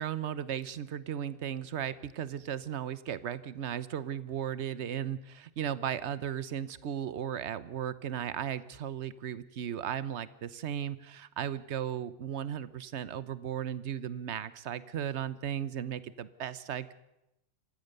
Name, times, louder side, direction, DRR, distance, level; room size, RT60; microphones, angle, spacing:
voice 1, 0.0-16.9, right 9 dB, 55° right, 16 dB, 1.1 m, -36 dB
27.0 x 15.0 x 6.7 m, 0.88 s
omnidirectional pair, 1.4 m